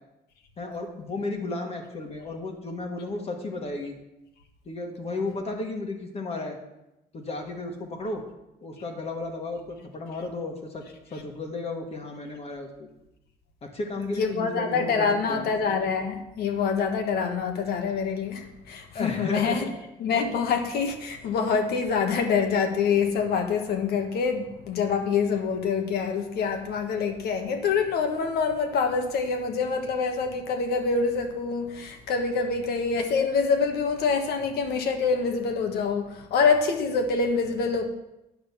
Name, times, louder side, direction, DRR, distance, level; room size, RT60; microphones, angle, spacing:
voice 1, 0.6-3.9 4.6-6.6 7.1-8.2 8.6-10.8 11.1-12.9 13.6-15.5 18.9-19.7, left 2 dB, 35° left, 2 dB, 1.6 m, -33 dB
voice 2, 14.2-19.6 20.0-37.9, left 5 dB, 70° left, 5 dB, 1.4 m, -26 dB
9.5 x 5.2 x 7.2 m, 0.91 s
cardioid pair, 110°, 17 cm